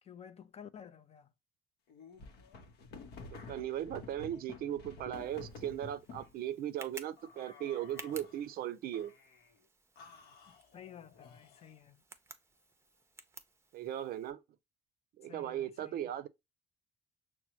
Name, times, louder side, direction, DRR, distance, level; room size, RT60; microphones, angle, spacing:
voice 1, 0.0-1.3 10.5-12.0 15.2-16.1, left 8 dB, 40° left, 0.5 m, -53 dB
sound 1, 1.9-6.3 7.2-8.5 8.9-9.5 10.0-11.8, left 4 dB, 75° left, 0.8 m, -51 dB
voice 2, 3.5-9.1 13.7-14.4 15.2-16.3, right 11 dB, 65° right, 0.5 m, -38 dB
Tick, 5.1-14.3, right 3 dB, 15° right, 0.6 m, -55 dB
6.0 x 2.1 x 2.7 m
cardioid pair, 110°, 17 cm